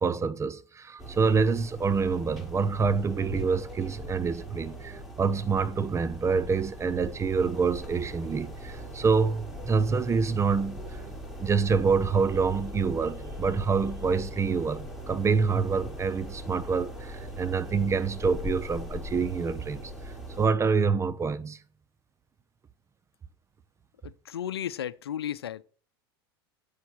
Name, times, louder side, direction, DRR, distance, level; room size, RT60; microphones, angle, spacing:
voice 1, 0.0-11.0 11.4-21.6, right 5 dB, 20° right, 0.8 m, -27 dB
sound 1, 1.0-20.5, equal, 5° right, 5.2 m, -40 dB
voice 2, 24.0-25.6, left 10 dB, 90° left, 0.6 m, -34 dB
8.3 x 8.2 x 6.2 m
hypercardioid pair, 90°, 13 cm